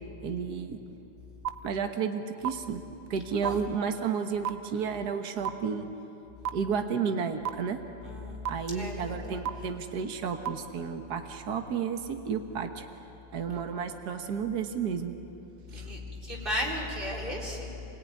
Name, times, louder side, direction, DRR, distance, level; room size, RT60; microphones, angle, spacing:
voice 1, 0.2-0.8 1.6-2.8 3.1-5.9 6.5-7.8 8.5-12.9 13.3-15.1 15.7-15.9, right 6 dB, 60° right, 6 dB, 1.8 m, -32 dB
sound 1, 1.5-1.6 2.4-2.5 3.4-3.5 4.5-4.6 5.5-5.6 6.5-6.6 7.5-7.6 8.5-8.6 9.5-9.6 10.5-10.6, right 11 dB, 85° right, 1.5 m, -28 dB
voice 2, 8.0-9.5 15.7-17.8, left 1 dB, 25° right, -3 dB, 4.2 m, -35 dB
28.5 x 18.5 x 9.4 m, 3.0 s
omnidirectional pair, 2.0 m